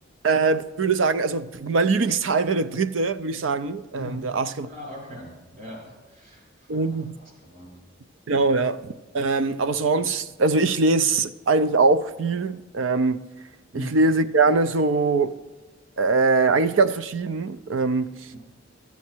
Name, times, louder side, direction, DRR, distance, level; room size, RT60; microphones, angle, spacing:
voice 1, 0.2-4.7 6.7-7.1 8.3-13.3 13.7-15.4 16.0-18.2, right 3 dB, 85° right, 0.5 m, -22 dB
voice 2, 4.5-7.8 8.3-8.5 13.7-13.9, equal, 45° right, 4.6 m, -40 dB
13.0 x 8.4 x 4.4 m
head